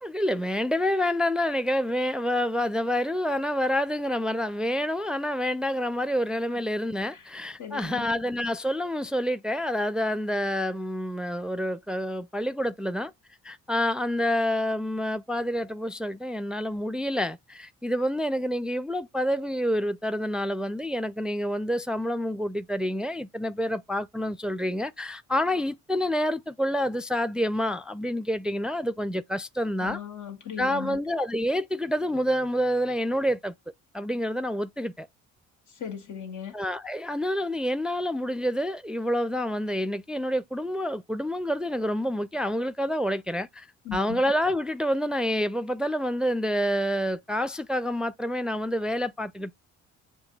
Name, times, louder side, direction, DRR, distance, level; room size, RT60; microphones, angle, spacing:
voice 1, 0.0-13.1 13.4-30.0 30.6-33.5 33.9-35.1 36.5-49.5, equal, 5° right, 0.4 m, -28 dB
voice 2, 7.6-8.1 29.8-31.0 35.7-36.5 43.8-44.2, left 8 dB, 75° left, 2.0 m, -37 dB
7.0 x 2.7 x 5.2 m
cardioid pair, 90°, 30 cm